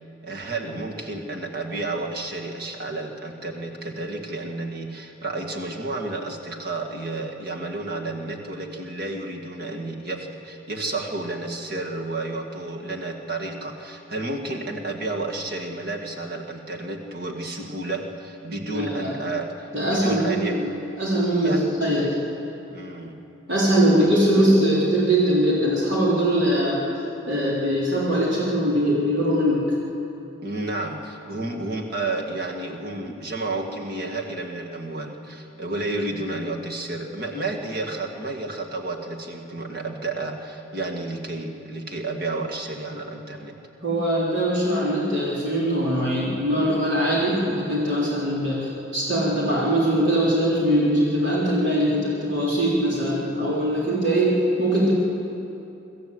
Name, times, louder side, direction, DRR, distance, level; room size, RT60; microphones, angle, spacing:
voice 1, 0.2-20.6 21.4-21.6 22.7-23.2 24.0-24.1 30.4-43.6, right 2 dB, 50° right, 1 dB, 2.1 m, -31 dB
voice 2, 18.7-19.1 19.7-20.7 21.0-22.1 23.5-26.8 27.3-29.7 43.8-54.9, right 1 dB, 65° right, -7 dB, 4.0 m, -22 dB
25.0 x 14.0 x 8.1 m, 2.8 s
head